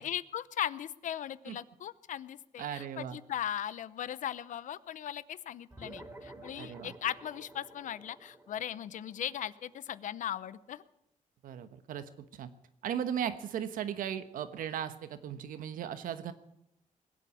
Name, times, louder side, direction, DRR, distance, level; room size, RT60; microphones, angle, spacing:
voice 1, 0.0-10.8, left 10 dB, 65° left, 17 dB, 0.7 m, -38 dB
voice 2, 2.6-3.2 6.6-6.9 11.4-12.5 12.8-16.3, right 9 dB, 80° right, 11 dB, 1.2 m, -37 dB
sound 1, 5.7-10.5, right 2 dB, 15° right, 3.3 m, -52 dB
20.5 x 8.5 x 8.3 m, 0.82 s
cardioid pair, 110°, 14 cm